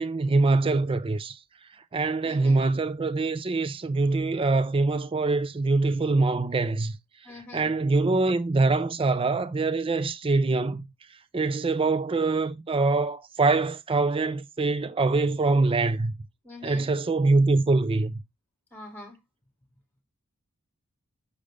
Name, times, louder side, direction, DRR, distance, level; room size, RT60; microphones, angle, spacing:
voice 1, 0.0-1.4 1.9-6.9 7.5-10.8 11.3-16.1 16.6-18.1, right 3 dB, 25° right, 0.4 m, -24 dB
voice 2, 2.2-2.6 7.2-7.7 16.4-16.9 18.7-19.2, left 2 dB, 10° left, 2.7 m, -44 dB
6.4 x 5.1 x 3.4 m
head